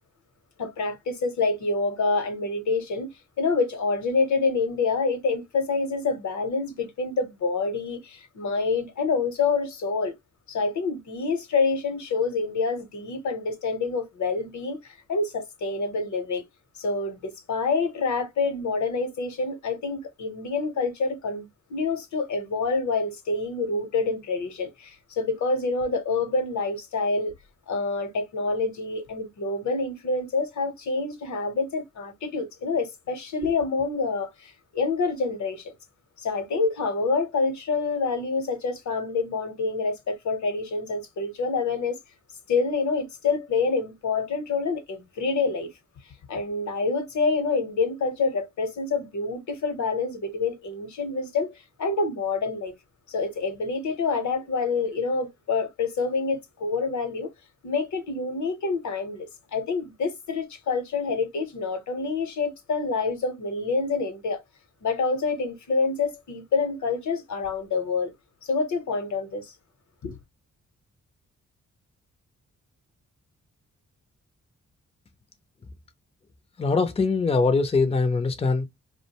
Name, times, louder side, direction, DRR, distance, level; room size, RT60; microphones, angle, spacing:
voice 1, 0.6-3.1 3.4-10.1 10.5-16.4 16.8-27.3 27.7-35.7 36.2-42.0 42.5-45.7 46.3-51.5 51.8-52.7 53.1-57.3 57.6-64.4 64.8-68.1 68.4-69.5 70.0-70.1, left 4 dB, 65° left, 0.9 m, -27 dB
voice 2, 76.6-78.7, left 4 dB, 20° left, 0.5 m, -22 dB
2.4 x 2.1 x 2.8 m
cardioid pair, 70°, 31 cm